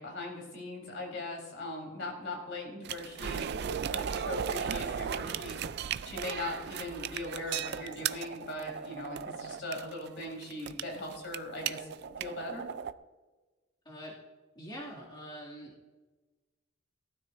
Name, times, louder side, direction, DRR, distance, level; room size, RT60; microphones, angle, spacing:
voice 1, 0.0-5.7 6.0-11.9 12.2-12.7, left 2 dB, 65° left, 0 dB, 3.9 m, -40 dB
sound 1, 2.8-12.9, right 8 dB, 60° right, 0.4 m, -36 dB
voice 2, 13.8-14.2 14.6-15.7, equal, 25° left, -6 dB, 2.4 m, -44 dB
18.0 x 12.5 x 2.6 m, 1.2 s
head